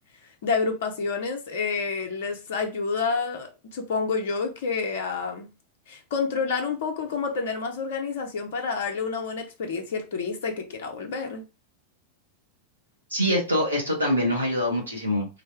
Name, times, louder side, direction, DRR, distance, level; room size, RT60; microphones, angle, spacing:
voice 1, 0.2-5.5 5.9-11.4, left 5 dB, 55° left, 0.8 m, -29 dB
voice 2, 13.1-15.3, equal, 85° right, 1.3 m, -24 dB
4.1 x 2.2 x 3.3 m
figure-of-eight pair, 90°, 0 cm